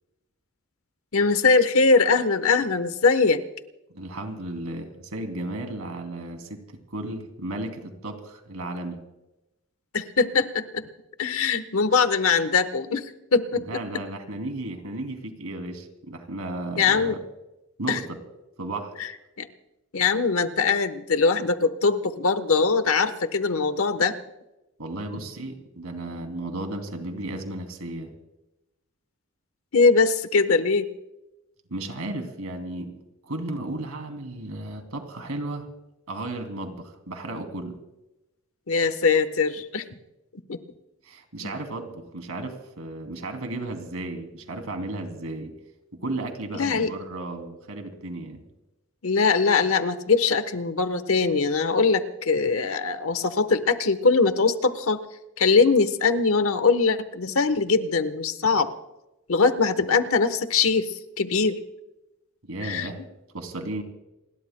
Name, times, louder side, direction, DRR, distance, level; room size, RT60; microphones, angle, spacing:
voice 1, 1.1-3.4 9.9-10.9 11.2-13.8 16.8-17.2 17.9-18.0 19.4-19.5 19.9-24.1 29.7-30.9 38.7-39.8 40.5-40.6 41.4-41.5 46.5-46.9 49.0-55.0 55.4-58.7 59.3-61.6 62.6-62.9, left 4 dB, 75° left, 11 dB, 1.1 m, -22 dB
voice 2, 3.9-9.0 13.5-17.2 17.8-18.2 18.6-18.9 24.8-28.1 31.7-32.9 33.2-35.7 36.1-37.8 41.0-45.5 45.9-48.4 62.4-63.0 63.3-63.8, right 2 dB, 85° right, 5 dB, 2.8 m, -34 dB
29.0 x 21.0 x 2.2 m, 0.98 s
head